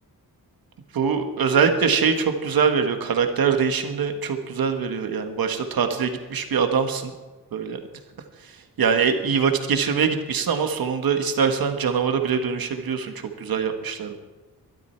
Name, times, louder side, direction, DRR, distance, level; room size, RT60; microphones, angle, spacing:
voice 1, 0.9-7.1 7.5-7.8 8.4-8.5 8.8-14.2, right 6 dB, 70° right, 6 dB, 1.6 m, -23 dB
22.5 x 12.0 x 4.6 m, 1.2 s
wide cardioid pair, 170°, 36 cm